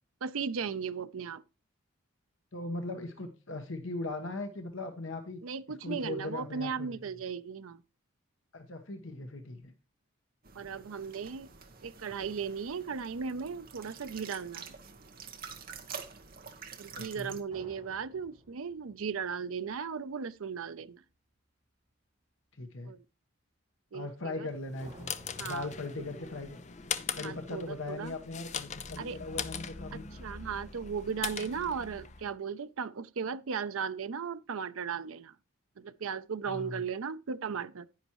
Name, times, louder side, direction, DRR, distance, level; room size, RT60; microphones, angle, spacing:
voice 1, 0.2-1.4 5.4-7.8 10.5-11.5 11.8-14.7 16.8-21.0 22.8-23.0 23.9-24.5 25.4-25.7 27.2-28.1 29.0-29.2 29.9-35.3 35.8-37.9, right 6 dB, 90° right, 0.5 m, -36 dB
voice 2, 2.5-5.4 5.8-7.0 8.5-9.7 16.9-17.4 22.5-22.9 23.9-25.1 25.4-26.6 27.1-30.1 36.5-36.8, left 2 dB, 75° left, 1.3 m, -39 dB
sound 1, 10.4-17.4, right 6 dB, 45° right, 1.2 m, -47 dB
sound 2, 17.5-20.5 24.8-25.8, right 1 dB, 20° right, 5.2 m, -55 dB
sound 3, 24.6-32.3, left 7 dB, 35° left, 0.6 m, -40 dB
10.5 x 10.0 x 3.0 m
head